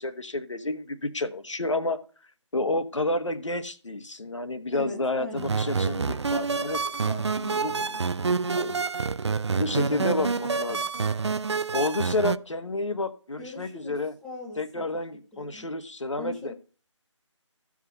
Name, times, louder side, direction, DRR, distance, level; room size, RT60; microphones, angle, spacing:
voice 1, 0.0-2.0 2.5-6.8 7.5-7.9 8.5-8.8 9.6-10.9 11.7-14.1 14.6-16.5, left 2 dB, 70° left, 9 dB, 1.3 m, -30 dB
voice 2, 4.7-5.5 7.1-8.3 9.8-10.3 13.4-14.8 15.3-15.7 16.2-16.5, left 3 dB, 5° left, 0 dB, 1.1 m, -40 dB
sound 1, 5.4-12.4, right 5 dB, 60° right, 0.5 m, -27 dB
14.5 x 5.0 x 5.5 m, 0.37 s
figure-of-eight pair, 155°, 16 cm